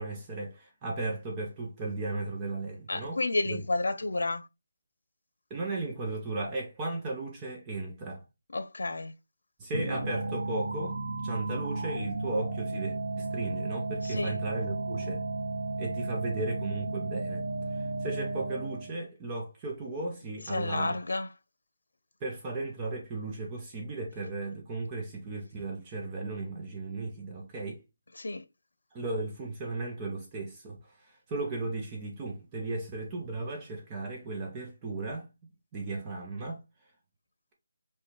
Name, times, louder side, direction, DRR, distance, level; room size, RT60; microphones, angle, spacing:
voice 1, 0.0-3.2 3.5-3.6 5.5-8.2 9.6-15.2 15.8-17.4 17.7-20.9 22.2-27.8 28.9-35.3 35.7-36.6, right 2 dB, 10° right, 0.6 m, -36 dB
voice 2, 2.9-4.5 8.5-9.1 14.0-14.4 20.5-21.3 28.1-28.4, left 2 dB, 90° left, 0.7 m, -31 dB
sound 1, 9.7-19.0, right 3 dB, 75° right, 0.7 m, -34 dB
5.6 x 2.3 x 3.2 m
hypercardioid pair, 180°, 0 cm